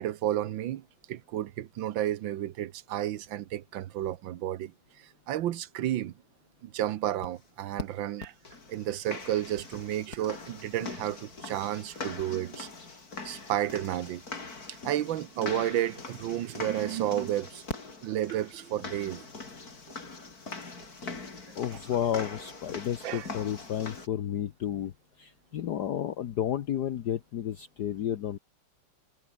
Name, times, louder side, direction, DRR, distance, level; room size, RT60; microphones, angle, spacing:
voice 1, 0.0-6.1 6.6-8.3 8.7-12.7 13.2-14.2 14.7-17.6 18.0-19.3 23.0-23.3, right 12 dB, 65° right, 1.5 m, -32 dB
sound 1, 7.2-7.3 7.8-7.9 8.2-24.1, left 3 dB, 40° left, 3.9 m, -42 dB
voice 2, 21.5-24.9 25.2-28.4, left 10 dB, 60° left, 1.3 m, -32 dB
omnidirectional pair, 2.4 m